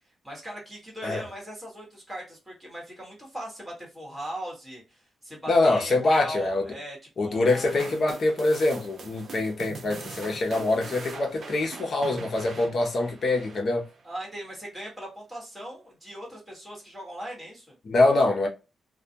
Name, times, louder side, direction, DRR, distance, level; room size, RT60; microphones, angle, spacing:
voice 1, 0.2-7.8 14.0-17.7, equal, 5° right, 1.3 m, -39 dB
voice 2, 5.5-6.7 7.2-13.8 17.8-18.5, left 2 dB, 45° left, 0.7 m, -24 dB
sound 1, 7.5-14.0, right 4 dB, 55° right, 0.5 m, -42 dB
2.3 x 2.2 x 2.7 m
cardioid pair, 120°, 0 cm